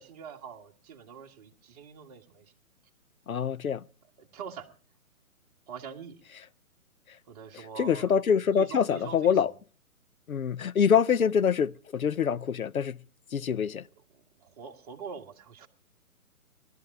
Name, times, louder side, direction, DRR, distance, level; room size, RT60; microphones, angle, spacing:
voice 1, 0.0-2.5 4.2-4.7 5.7-6.3 7.3-8.1 8.4-9.5 14.1-15.7, right 7 dB, 25° right, 1.6 m, -44 dB
voice 2, 3.3-3.8 7.8-9.5 10.3-13.0 13.3-13.8, left 7 dB, 70° left, 0.7 m, -25 dB
19.5 x 12.5 x 5.8 m
figure-of-eight pair, 135°, 44 cm